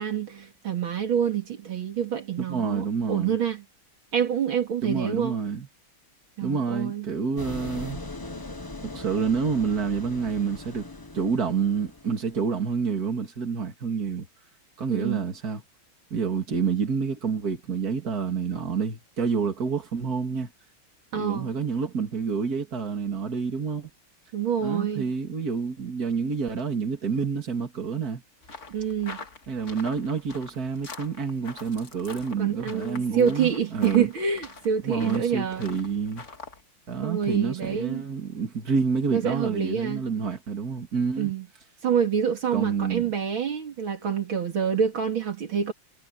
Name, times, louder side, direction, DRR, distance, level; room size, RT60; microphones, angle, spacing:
voice 1, 0.0-3.6 4.1-5.4 6.4-7.1 14.9-15.3 21.1-21.5 24.3-25.0 28.7-29.2 32.4-35.7 37.0-38.0 39.1-40.0 41.2-41.5 41.8-45.7, right 8 dB, 70° right, 3.0 m, -27 dB
voice 2, 2.4-3.3 4.8-5.7 6.4-8.0 8.8-10.9 11.1-14.3 14.8-15.6 16.1-20.5 21.1-23.9 24.6-28.2 29.5-34.1 34.8-36.3 36.9-41.3 42.5-43.1, right 5 dB, 45° right, 3.2 m, -28 dB
sound 1, 7.4-12.7, left 2 dB, 20° left, 0.6 m, -40 dB
sound 2, 28.4-36.6, left 4 dB, 35° left, 2.2 m, -45 dB
omnidirectional pair, 2.3 m